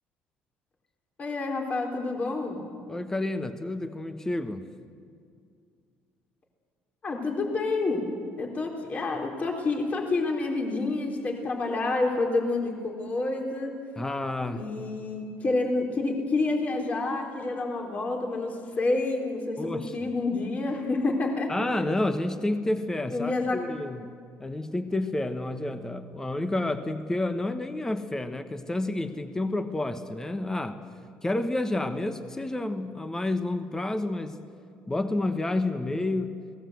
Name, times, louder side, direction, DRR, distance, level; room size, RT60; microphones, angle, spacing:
voice 1, 1.2-2.6 7.0-8.1 8.4-13.7 14.5-21.7 23.1-23.6, left 3 dB, 35° left, 2 dB, 3.7 m, -28 dB
voice 2, 2.9-4.7 14.0-14.6 19.6-20.1 21.5-24.1 24.4-30.8 31.2-34.4 34.9-36.3, left 2 dB, 15° left, 9 dB, 1.2 m, -30 dB
29.0 x 19.0 x 7.9 m, 2.3 s
cardioid pair, 105°, 4 cm